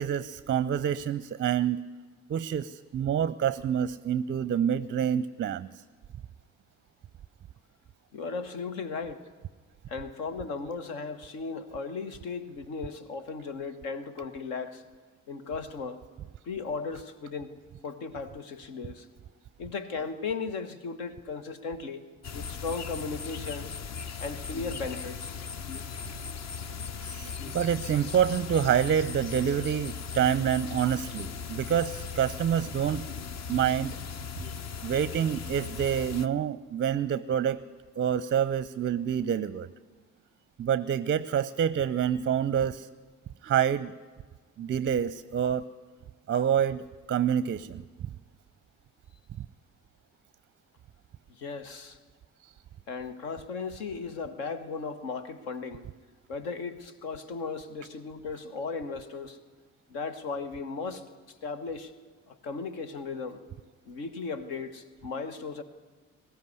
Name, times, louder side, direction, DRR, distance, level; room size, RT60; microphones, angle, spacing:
voice 1, 0.0-1.8 2.3-5.7 27.0-33.0 33.5-34.0 34.8-37.6 38.0-39.7 40.6-42.9 43.4-43.9 44.6-45.7 46.3-47.8, right 9 dB, 25° right, 17 dB, 0.6 m, -27 dB
voice 2, 8.1-9.2 9.9-14.8 15.3-16.0 16.4-17.6 17.8-19.1 19.6-22.0 22.3-23.7 24.2-25.4 26.7-26.8 51.4-52.0 52.9-55.8 56.3-59.4 59.9-61.0 61.4-61.9 62.3-63.4 63.8-65.6, left 4 dB, 65° left, 10 dB, 1.4 m, -36 dB
sound 1, 22.2-36.3, left 6 dB, 40° left, 0.9 m, -38 dB
20.5 x 14.0 x 9.5 m, 1.4 s
figure-of-eight pair, 45°, 42 cm